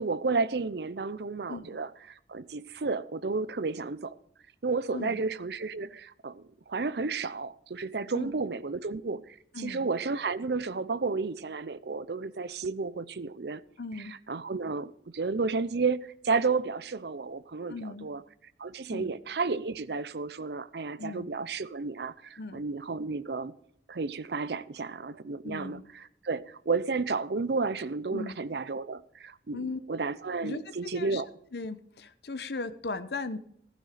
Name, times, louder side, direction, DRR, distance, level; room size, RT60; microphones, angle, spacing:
voice 1, 0.0-4.1 4.6-13.6 14.0-18.2 18.6-23.5 23.9-31.3, right 4 dB, 65° right, 0.6 m, -32 dB
voice 2, 1.5-1.8 4.9-5.2 8.1-8.3 9.5-9.9 13.8-14.2 17.7-18.1 18.9-19.1 21.0-21.3 22.4-22.6 25.4-25.8 28.1-28.3 29.5-29.8 30.4-31.2 31.5-33.4, left 3 dB, 65° left, 0.8 m, -37 dB
15.0 x 10.0 x 5.0 m
head